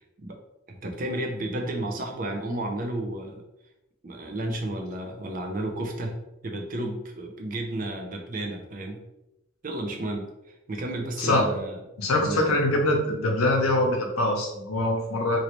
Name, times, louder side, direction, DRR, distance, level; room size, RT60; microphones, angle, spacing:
voice 1, 0.7-3.4 4.0-9.0 9.6-11.8 12.2-12.4, right 1 dB, 40° right, 3 dB, 0.5 m, -32 dB
voice 2, 12.0-15.4, left 1 dB, 90° left, 1 dB, 0.7 m, -23 dB
3.1 x 2.7 x 3.0 m, 0.90 s
head